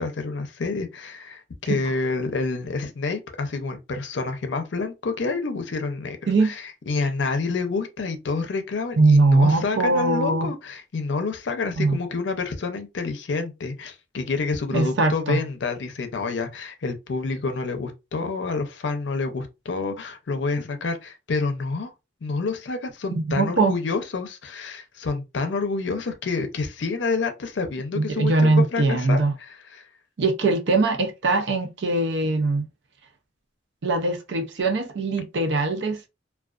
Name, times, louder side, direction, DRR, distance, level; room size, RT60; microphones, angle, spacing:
voice 1, 0.0-21.9 22.2-29.9, left 4 dB, 70° left, 0.5 m, -28 dB
voice 2, 9.0-10.5 11.8-12.0 14.7-15.4 23.1-23.8 28.0-29.3 30.2-32.6 33.8-36.1, right 3 dB, 65° right, 0.5 m, -21 dB
2.4 x 2.3 x 2.3 m
head